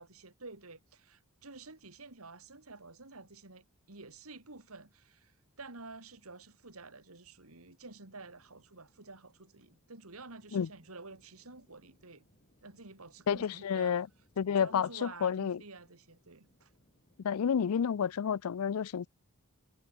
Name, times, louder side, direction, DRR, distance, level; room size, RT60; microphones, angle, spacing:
voice 1, 0.0-12.3 12.6-14.0 14.5-16.7, right 3 dB, 80° right, 3.2 m, -50 dB
sound 1, 7.7-18.4, left 1 dB, 35° left, 5.3 m, -71 dB
voice 2, 13.3-14.1 14.4-15.6 17.2-19.1, left 7 dB, 90° left, 0.4 m, -30 dB
head